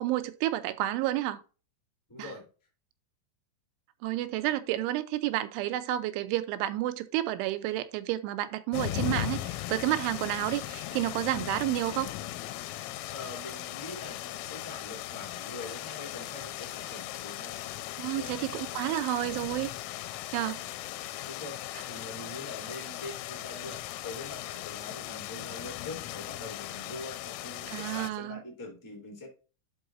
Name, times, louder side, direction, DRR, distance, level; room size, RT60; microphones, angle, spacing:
voice 1, 0.0-1.4 2.2-2.3 4.0-12.1 18.0-19.7 20.3-20.6 27.7-28.4, right 14 dB, 85° right, 2.9 m, -30 dB
voice 2, 2.1-2.5 13.1-18.3 21.2-29.3, left 2 dB, 10° left, 1.0 m, -44 dB
sound 1, 8.7-28.1, left 15 dB, 85° left, 3.1 m, -38 dB
11.0 x 5.5 x 2.5 m
omnidirectional pair, 5.7 m